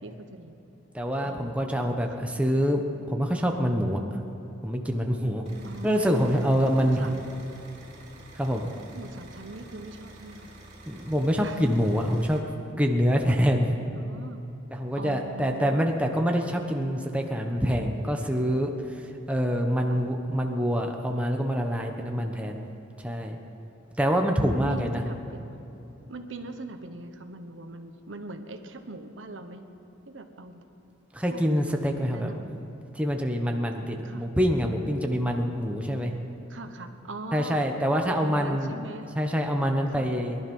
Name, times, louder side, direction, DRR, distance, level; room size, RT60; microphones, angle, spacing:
voice 1, 0.0-0.6 1.2-2.3 5.6-6.5 6.8-7.2 8.9-10.5 11.4-11.6 13.9-14.4 14.9-15.9 19.9-20.0 24.5-25.6 26.1-29.7 30.0-30.6 31.3-31.4 32.1-32.5 34.0-34.3 36.5-37.6 38.1-39.1 39.9-40.1, right 2 dB, 75° right, 6 dB, 1.1 m, -41 dB
voice 2, 0.9-2.8 3.1-4.0 4.6-5.5 5.8-7.1 8.3-8.7 10.9-12.4 12.8-13.7 14.7-18.7 19.3-22.6 23.0-23.4 24.0-25.0 31.1-32.3 32.9-36.1 37.3-38.7 39.2-40.4, equal, 5° right, 2 dB, 1.1 m, -25 dB
sound 1, 5.5-12.4, right 1 dB, 40° right, 3.8 m, -49 dB
22.0 x 12.0 x 5.5 m, 2.9 s
head